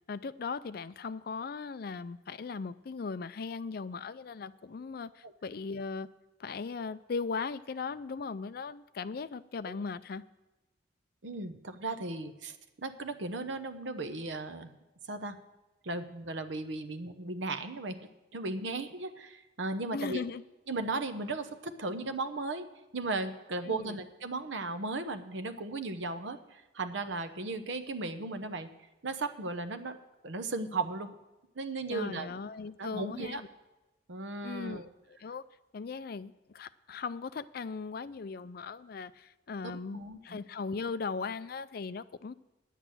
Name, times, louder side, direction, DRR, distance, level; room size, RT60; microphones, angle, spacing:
voice 1, 0.1-6.1 6.4-10.2 19.9-20.4 23.7-24.0 31.9-33.5 34.4-34.8 35.1-35.4 35.7-42.3, left 4 dB, 55° left, 14 dB, 0.4 m, -38 dB
voice 2, 11.2-12.6 12.8-14.7 15.1-15.4 15.8-20.2 20.7-22.7 22.9-28.7 29.0-30.0 30.2-31.1 31.5-32.3 32.8-33.4 34.1-34.9 39.6-40.4, right 3 dB, 85° right, 9 dB, 0.9 m, -36 dB
10.0 x 8.3 x 7.6 m, 1.0 s
head